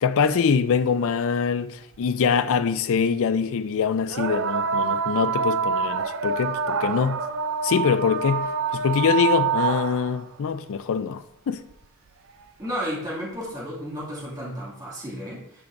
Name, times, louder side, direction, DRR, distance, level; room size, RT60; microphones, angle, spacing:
voice 1, 0.0-7.2 7.6-11.6, left 6 dB, 65° left, 0.4 m, -24 dB
sound 1, 2.0-2.1 4.1-10.2 11.7-11.8 12.7-12.8, right 6 dB, 60° right, 0.4 m, -26 dB
voice 2, 12.6-15.6, equal, 20° right, 2.2 m, -33 dB
9.7 x 5.8 x 2.6 m
head